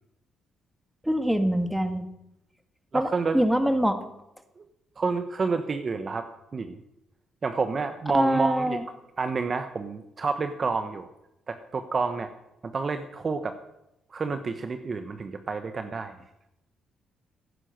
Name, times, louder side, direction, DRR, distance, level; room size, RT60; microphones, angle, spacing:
voice 1, 1.0-2.1 2.9-4.0 8.1-8.8, equal, 5° right, 8 dB, 1.9 m, -24 dB
voice 2, 2.9-3.4 4.6-4.7 5.0-6.2 6.5-6.8 7.4-8.8 9.2-11.1 11.5-12.3 12.6-13.6 14.1-16.1, right 4 dB, 40° right, 8 dB, 1.1 m, -29 dB
16.5 x 10.0 x 6.6 m, 0.86 s
cardioid pair, 90°, 0 cm